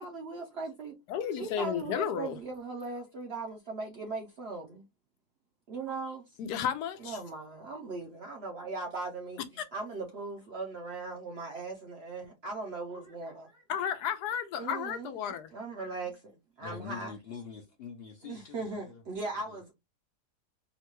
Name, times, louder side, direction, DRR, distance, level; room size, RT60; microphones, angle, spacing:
voice 1, 0.0-0.9 1.4-4.8 5.7-6.3 7.0-13.6 14.6-15.1 15.5-17.1 18.2-19.7, right 3 dB, 60° right, 0.6 m, -39 dB
voice 2, 1.1-2.4 6.4-7.2 13.7-15.5, left 8 dB, 85° left, 1.2 m, -33 dB
voice 3, 16.6-19.0 19.5-19.6, left 6 dB, 60° left, 0.6 m, -45 dB
3.9 x 2.2 x 3.0 m
omnidirectional pair, 1.7 m